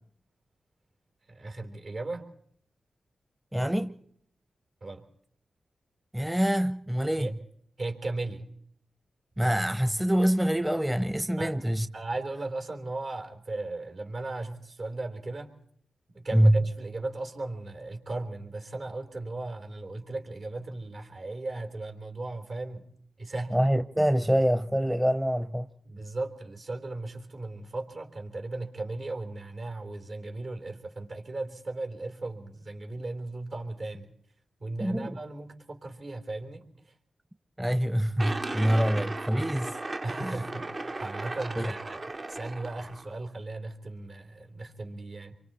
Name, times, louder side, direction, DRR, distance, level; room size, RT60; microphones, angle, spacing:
voice 1, 1.3-2.3 4.8-5.0 7.2-7.3 7.8-8.5 11.4-11.5 11.9-15.5 16.1-22.9 23.2-23.6 25.8-34.1 34.6-36.9 40.0-40.7 41.0-42.0 42.3-45.4, right 2 dB, 65° right, 3.7 m, -36 dB
voice 2, 3.5-3.9 6.1-7.3 9.4-11.9 16.3-16.6 23.5-25.7 34.8-35.2 37.6-39.8 40.2-40.4 41.6-41.7, equal, 10° right, 0.8 m, -25 dB
sound 1, 38.2-43.1, right 2 dB, 45° right, 0.9 m, -36 dB
27.0 x 24.0 x 4.3 m
supercardioid pair, 40°, 0 cm